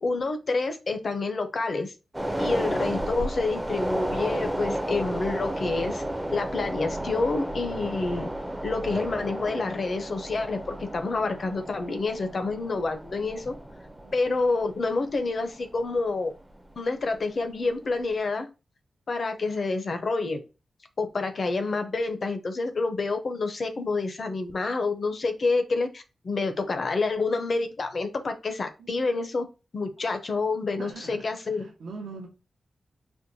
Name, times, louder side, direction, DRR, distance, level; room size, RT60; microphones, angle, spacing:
voice 1, 0.0-1.9 2.4-6.0 6.3-8.3 8.6-13.6 14.1-16.3 16.8-18.5 19.1-20.4 21.0-29.5 29.7-31.7, left 3 dB, 45° left, 0.5 m, -28 dB
sound 1, 2.1-16.7 17.1-17.2, right 1 dB, 10° right, 0.4 m, -33 dB
voice 2, 30.8-31.3 31.6-32.3, right 4 dB, 85° right, 0.7 m, -41 dB
4.3 x 2.1 x 2.6 m
wide cardioid pair, 145°, 0 cm